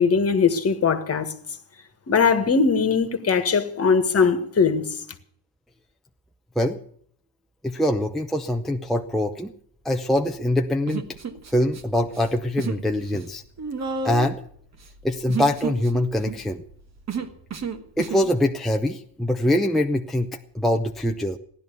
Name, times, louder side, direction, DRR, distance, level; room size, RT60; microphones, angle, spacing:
voice 1, 0.0-1.3 2.1-4.9, left 5 dB, 35° left, 1.7 m, -20 dB
voice 2, 7.6-9.5 9.8-11.0 11.5-13.4 14.0-14.4 15.0-16.6 18.0-21.4, left 1 dB, ahead, 0.7 m, -23 dB
Human voice, 10.9-11.8 12.1-12.8 13.1-18.3, right 5 dB, 40° right, 1.5 m, -32 dB
15.5 x 11.0 x 6.8 m
cardioid pair, 130°, 43 cm